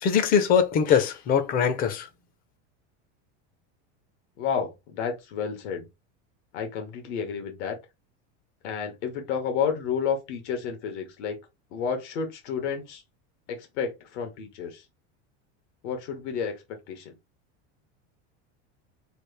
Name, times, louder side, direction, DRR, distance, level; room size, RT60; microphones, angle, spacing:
voice 1, 0.0-2.1, left 7 dB, 25° left, 0.5 m, -22 dB
voice 2, 4.4-5.9 6.5-7.8 8.6-11.4 11.7-13.0 13.5-14.8 15.8-16.6 16.9-17.1, left 6 dB, 80° left, 1.3 m, -31 dB
3.3 x 2.4 x 3.2 m
cardioid pair, 160°, 34 cm